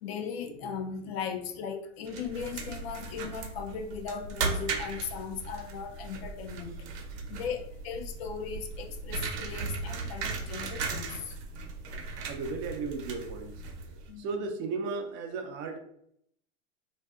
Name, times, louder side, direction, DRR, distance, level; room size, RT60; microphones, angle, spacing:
voice 1, 0.0-6.9 7.3-11.4 14.1-14.5, left 6 dB, 60° left, 0.5 m, -38 dB
sound 1, 2.1-14.1, right 4 dB, 65° right, 0.8 m, -37 dB
voice 2, 6.6-7.0 12.3-13.6 13.9-15.8, right 4 dB, 35° right, 0.4 m, -36 dB
2.6 x 2.5 x 2.3 m
hypercardioid pair, 110°, 35 cm